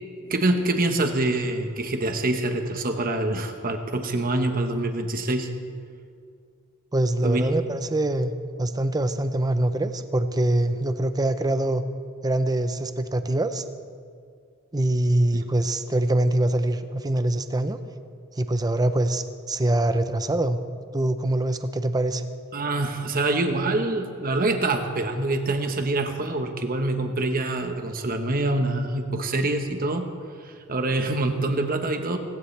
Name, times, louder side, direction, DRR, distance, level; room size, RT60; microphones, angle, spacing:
voice 1, 0.3-5.5 7.2-7.4 15.3-15.4 22.5-30.0 30.4-32.2, right 2 dB, 45° right, 5 dB, 1.2 m, -25 dB
voice 2, 6.9-8.3 8.6-11.8 12.2-13.6 14.7-17.8 18.4-20.6 20.9-22.2, right 1 dB, 20° right, 10 dB, 0.6 m, -24 dB
18.0 x 16.0 x 3.3 m, 2.2 s
head